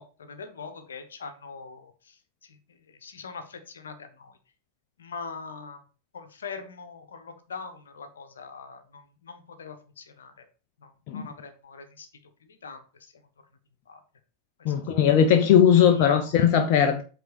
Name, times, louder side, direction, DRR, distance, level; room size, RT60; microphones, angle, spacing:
voice 1, 0.0-4.4 5.0-5.9 6.1-10.4 10.8-12.1 12.4-13.1 13.9-14.0 14.6-14.7 15.9-16.3, left 5 dB, 65° left, 8 dB, 1.2 m, -43 dB
voice 2, 14.6-17.0, left 8 dB, 45° left, 5 dB, 0.8 m, -19 dB
8.0 x 3.8 x 5.2 m, 0.37 s
figure-of-eight pair, 90°, 0 cm